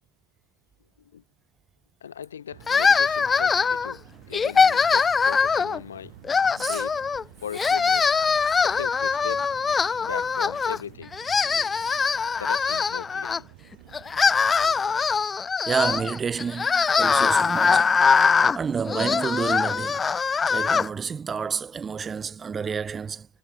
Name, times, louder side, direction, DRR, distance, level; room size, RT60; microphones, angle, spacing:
voice 1, 2.0-4.0 4.3-6.1 6.6-7.0 7.4-8.1 8.6-9.5 10.0-11.1 12.4-13.4, left 8 dB, 65° left, 4.0 m, -38 dB
sound 1, 2.5-15.3, right 29 dB, 45° right, 6.4 m, -50 dB
sound 2, 2.7-3.9 4.3-5.8 6.2-7.2 7.5-10.8 11.1-13.4 13.9-20.9, left 5 dB, 15° left, 0.4 m, -22 dB
voice 2, 15.7-18.0 18.5-20.0 20.5-23.3, right 6 dB, 20° right, 1.9 m, -29 dB
figure-of-eight pair, 90°, 0 cm